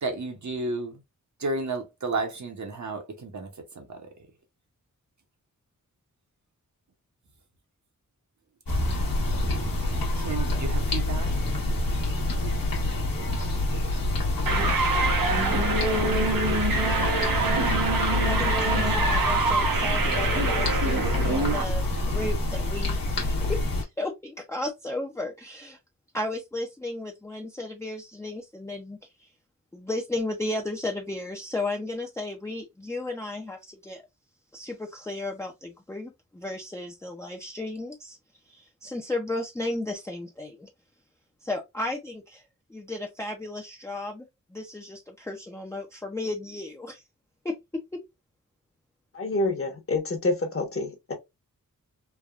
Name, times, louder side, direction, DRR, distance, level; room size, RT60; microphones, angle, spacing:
voice 1, 0.0-1.0 1.4-3.5 3.7-4.1 10.2-11.5, right 3 dB, 55° right, 0.9 m, -32 dB
sound 1, 8.7-23.8, left 2 dB, 85° left, 1.0 m, -27 dB
sound 2, 14.5-21.6, right 3 dB, 85° right, 0.9 m, -25 dB
voice 2, 18.2-23.0 23.5-25.8 26.1-29.3 29.7-34.0 34.5-38.2 38.5-40.7 41.4-42.4 42.7-44.3 44.5-47.0 47.4-48.0, left 2 dB, 10° left, 0.5 m, -34 dB
voice 3, 49.1-51.1, left 2 dB, 40° left, 1.0 m, -27 dB
3.4 x 2.2 x 2.3 m
wide cardioid pair, 70°, 33 cm